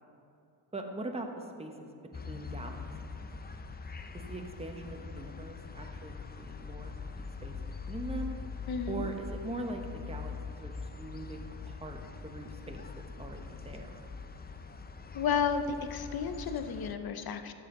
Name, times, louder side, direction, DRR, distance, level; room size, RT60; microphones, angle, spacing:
voice 1, 0.7-2.8 4.1-8.4 8.9-12.8 13.2-14.0, right 2 dB, 10° right, 3 dB, 1.1 m, -42 dB
sound 1, 2.1-16.9, left 5 dB, 20° left, 0.5 m, -43 dB
voice 2, 8.7-9.0 15.1-17.5, left 6 dB, 50° left, 8 dB, 0.8 m, -32 dB
13.0 x 6.7 x 3.9 m, 2.6 s
cardioid pair, 75°, 48 cm